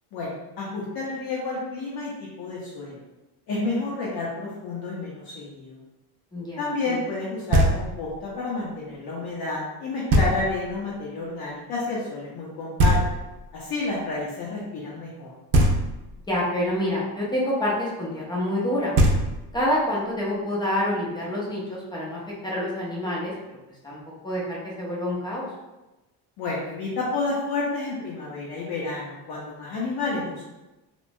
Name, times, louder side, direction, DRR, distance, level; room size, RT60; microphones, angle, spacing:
voice 1, 0.1-3.0 3.5-5.8 6.6-13.0 13.5-15.3 26.4-30.4, left 3 dB, 65° left, -6 dB, 0.6 m, -30 dB
voice 2, 6.3-7.0 16.3-18.9 19.5-23.3 23.8-25.5, left 1 dB, 10° left, -5 dB, 0.3 m, -27 dB
Knock, 7.5-8.2 10.1-10.8 12.8-13.6 15.5-16.3 18.6-18.7 18.9-19.8, right 1 dB, 90° right, 0.6 m, -22 dB
2.9 x 2.1 x 2.5 m, 1.0 s
cardioid pair, 170°, 40 cm